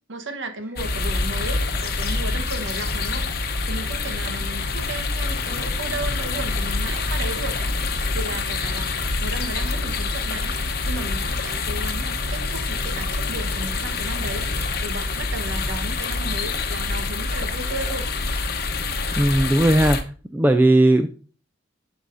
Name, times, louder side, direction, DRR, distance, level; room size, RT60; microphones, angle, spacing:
voice 1, 0.1-7.6 8.1-10.5 10.8-18.0, right 2 dB, 80° right, 7 dB, 1.0 m, -34 dB
sound 1, 0.7-20.0, left 3 dB, 55° left, 0.9 m, -26 dB
voice 2, 19.2-20.0 20.3-21.1, right 1 dB, 10° right, 7 dB, 0.3 m, -17 dB
12.0 x 4.8 x 2.5 m, 0.38 s
head